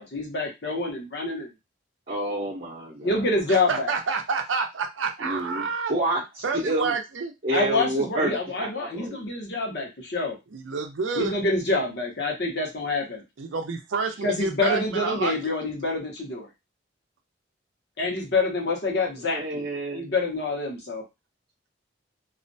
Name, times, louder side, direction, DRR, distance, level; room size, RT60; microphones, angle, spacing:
voice 1, 0.0-1.5 3.0-3.9 7.5-10.3 11.2-13.2 14.2-16.5 18.0-19.6 19.9-21.0, left 2 dB, 55° left, 0 dB, 0.8 m, -26 dB
voice 2, 2.1-3.3 5.2-7.0 7.4-9.2 19.2-20.1, right 1 dB, 40° right, -7 dB, 0.7 m, -29 dB
voice 3, 3.5-5.9 6.4-7.3 10.5-11.4 13.4-15.4, right 5 dB, 80° right, 5 dB, 0.5 m, -28 dB
2.4 x 2.1 x 2.6 m, 0.22 s
head